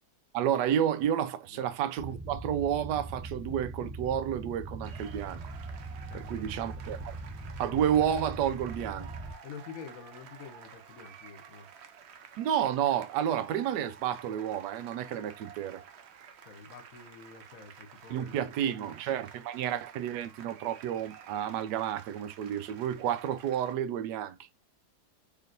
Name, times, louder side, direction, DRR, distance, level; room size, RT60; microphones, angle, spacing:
voice 1, 0.3-5.5 6.1-7.2 7.6-9.1 12.4-15.8 18.1-24.4, right 10 dB, 90° right, 1.2 m, -30 dB
sound 1, 2.0-9.3, right 2 dB, 10° right, 0.4 m, -41 dB
sound 2, 4.8-23.7, right 7 dB, 75° right, 0.6 m, -51 dB
voice 2, 6.1-6.8 9.4-11.7 16.4-18.9, left 6 dB, 60° left, 1.1 m, -48 dB
4.1 x 3.1 x 2.5 m
omnidirectional pair, 1.8 m